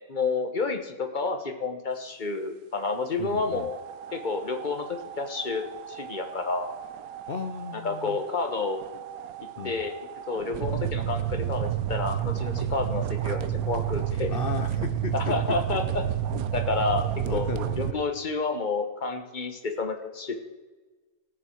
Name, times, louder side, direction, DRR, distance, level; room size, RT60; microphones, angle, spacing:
voice 1, 0.1-3.8 4.1-4.8 5.2-6.7 7.7-8.8 9.6-9.9 10.3-14.4 15.1-16.0 16.3-17.5 17.8-20.3, left 3 dB, 35° left, 5 dB, 1.1 m, -30 dB
voice 2, 3.2-3.7 7.3-8.2 9.6-9.8 14.3-15.8 17.2-18.0, left 6 dB, 55° left, 8 dB, 0.6 m, -35 dB
sound 1, 3.5-17.9, right 11 dB, 75° right, 1.1 m, -31 dB
18.0 x 7.0 x 4.5 m, 1.3 s
omnidirectional pair, 1.6 m